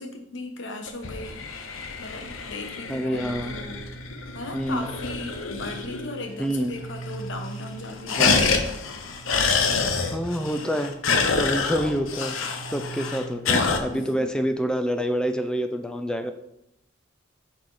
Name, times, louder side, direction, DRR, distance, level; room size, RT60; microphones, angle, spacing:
voice 1, 0.0-1.4 2.0-3.8 4.3-8.6 13.9-14.3, left 2 dB, 65° left, 4 dB, 1.1 m, -37 dB
sound 1, 0.9-6.2 6.5-6.6 6.8-7.3 7.6-13.8, left 4 dB, 85° left, 0.8 m, -27 dB
sound 2, 1.9-14.4, right 3 dB, 50° right, 0.9 m, -43 dB
voice 2, 2.9-3.6 4.5-4.9 6.4-6.8 8.2-8.5 10.1-11.0 11.3-12.4 12.7-16.3, equal, 5° left, 7 dB, 0.5 m, -27 dB
6.4 x 4.4 x 4.9 m, 0.82 s
head